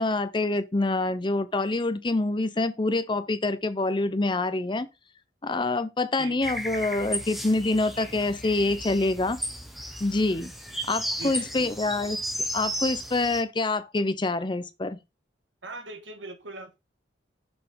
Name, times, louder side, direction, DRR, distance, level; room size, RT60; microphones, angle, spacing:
voice 1, 0.0-4.9 5.4-9.4 10.0-10.5 10.8-12.2 12.5-15.0, left 2 dB, 25° left, 0.6 m, -26 dB
voice 2, 6.2-6.6 11.2-11.7 15.6-16.8, right 3 dB, 90° right, 1.6 m, -41 dB
sound 1, 6.4-13.4, equal, ahead, 0.8 m, -34 dB
6.7 x 4.1 x 5.1 m
head